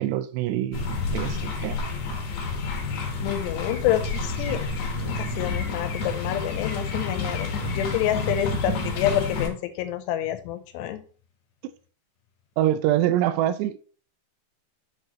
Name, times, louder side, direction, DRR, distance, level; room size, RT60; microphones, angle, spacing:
voice 1, 0.0-1.9 12.6-13.8, right 12 dB, 85° right, 2.7 m, -25 dB
sound 1, 0.7-9.5, left 4 dB, 65° left, 1.8 m, -29 dB
voice 2, 3.2-4.6 5.2-11.0, left 12 dB, 80° left, 2.8 m, -28 dB
8.3 x 6.4 x 3.0 m
omnidirectional pair, 5.0 m